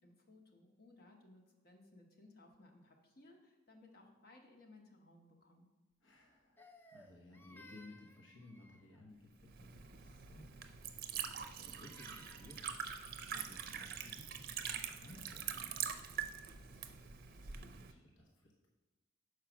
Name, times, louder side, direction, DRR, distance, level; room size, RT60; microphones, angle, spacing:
voice 1, 0.0-5.7, left 2 dB, 50° left, 1 dB, 1.0 m, -62 dB
voice 2, 6.0-18.7, left 1 dB, 75° left, -1 dB, 1.0 m, -59 dB
Crying sobbing, 6.6-9.1 11.3-12.8, left 2 dB, 10° left, 0.4 m, -61 dB
Liquid, 9.4-17.9, right 8 dB, 50° right, 0.5 m, -44 dB
5.8 x 4.7 x 6.1 m, 1.1 s
head